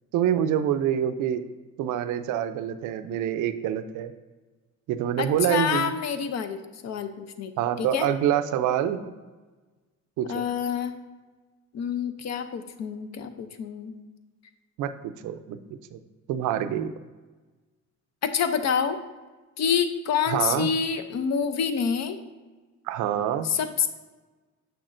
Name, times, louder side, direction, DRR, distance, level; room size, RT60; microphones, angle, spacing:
voice 1, 0.1-1.4 1.8-4.1 4.9-5.9 7.6-9.0 10.2-10.4 14.8-15.6 15.9-16.0 16.3-16.9 20.3-20.7 22.9-23.5, right 10 dB, 90° right, 10 dB, 0.5 m, -26 dB
voice 2, 5.2-7.5 7.8-8.1 10.3-10.9 11.7-13.9 18.2-19.0 19.6-22.2 23.4-23.9, left 7 dB, 60° left, 9 dB, 0.6 m, -27 dB
6.9 x 6.0 x 2.5 m, 1.3 s
cardioid pair, 90°, 30 cm